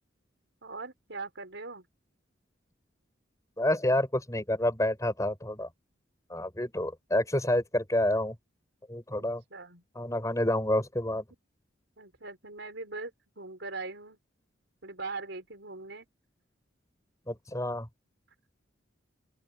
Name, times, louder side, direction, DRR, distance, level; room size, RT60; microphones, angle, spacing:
voice 1, 0.6-1.8 9.5-9.8 12.0-14.2 14.8-16.1, right 3 dB, 70° right, 4.8 m, -41 dB
voice 2, 3.6-5.7 6.3-8.4 8.9-9.4 10.0-11.3 17.3-17.9, left 1 dB, 15° left, 7.5 m, -28 dB
open air
head